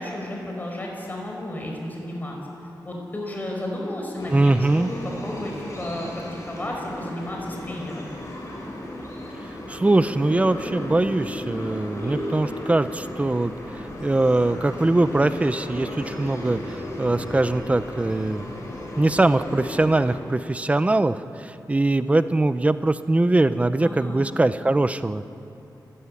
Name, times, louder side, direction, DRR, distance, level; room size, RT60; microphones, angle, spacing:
voice 1, 0.0-2.4 2.8-6.2 6.5-8.1 23.8-24.2, left 1 dB, 25° left, 0 dB, 5.3 m, -32 dB
sound 1, 4.2-20.1, left 1 dB, 40° left, 6.6 m, -35 dB
voice 2, 4.3-4.9 9.7-18.4 19.0-25.2, right 2 dB, 20° right, 12 dB, 0.7 m, -22 dB
30.0 x 14.5 x 9.9 m, 2.9 s
wide cardioid pair, 155°, 7 cm